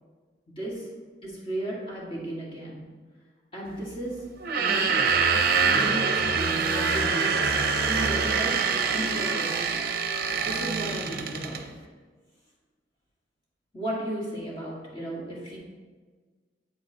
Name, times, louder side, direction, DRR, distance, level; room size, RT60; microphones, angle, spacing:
voice 1, 0.5-0.9 1.2-2.9 3.5-5.0 5.3-7.5 7.9-9.7 10.4-11.7 13.7-15.6, right 1 dB, 30° left, -4 dB, 1.7 m, -35 dB
sound 1, 4.4-11.6, right 5 dB, 50° right, 0.6 m, -25 dB
8.0 x 7.4 x 2.8 m, 1.5 s
head